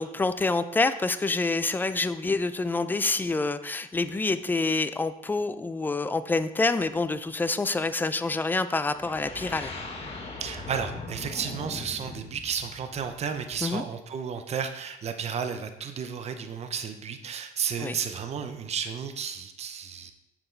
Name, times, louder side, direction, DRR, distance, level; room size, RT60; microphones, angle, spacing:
voice 1, 0.0-9.7 13.6-13.8 17.8-18.0, left 3 dB, 10° left, 12 dB, 0.3 m, -27 dB
sound 1, 8.9-13.7, left 3 dB, 35° left, 1.3 m, -40 dB
voice 2, 10.4-20.1, right 7 dB, 40° right, 7 dB, 0.6 m, -33 dB
6.8 x 5.9 x 3.2 m, 0.82 s
cardioid pair, 110°, 17 cm